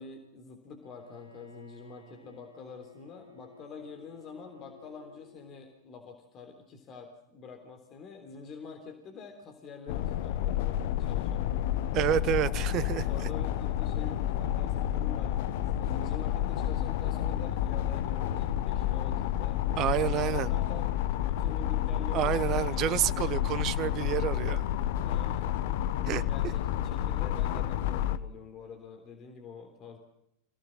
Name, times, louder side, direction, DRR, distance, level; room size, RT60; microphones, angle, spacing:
voice 1, 0.0-11.6 13.0-22.6 23.0-23.4 25.1-25.5 26.2-30.0, left 5 dB, 30° left, 3.5 m, -46 dB
Bowed string instrument, 0.8-5.6, left 2 dB, 85° left, 3.1 m, -55 dB
sound 1, 9.9-28.2, left 12 dB, 50° left, 1.0 m, -30 dB
voice 2, 11.9-13.1 19.8-20.5 22.1-24.7 26.1-26.2, right 12 dB, 35° right, 1.0 m, -29 dB
28.0 x 17.5 x 7.5 m
figure-of-eight pair, 90°, 0 cm